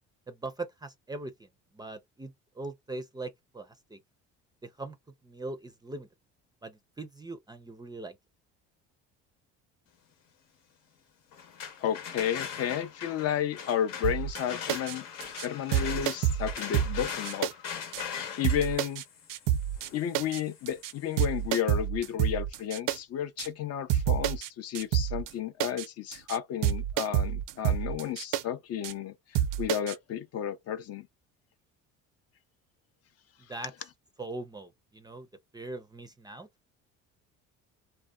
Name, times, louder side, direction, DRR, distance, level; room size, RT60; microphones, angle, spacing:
voice 1, 0.3-4.0 4.6-5.0 5.2-6.1 6.6-8.2 33.4-33.7 34.2-35.3 35.5-36.5, right 2 dB, 15° right, 0.4 m, -41 dB
sound 1, 11.3-21.2, left 7 dB, 80° left, 0.9 m, -41 dB
voice 2, 11.8-15.0 15.4-17.5 18.3-19.0 19.9-31.1, left 10 dB, 50° left, 0.5 m, -32 dB
sound 2, 14.0-14.4 14.7-14.9 15.2-15.5 15.7-17.5 17.9-18.0 18.4-19.0 19.3-19.9 20.1-20.4 20.7-20.9 21.2-23.0 23.4-23.5 23.9-24.5 24.7-25.3 25.6-25.9 26.1-26.4 26.6-28.4 28.8-28.9 29.3-29.9, right 11 dB, 75° right, 0.5 m, -28 dB
2.6 x 2.1 x 2.2 m
cardioid pair, 100°, 31 cm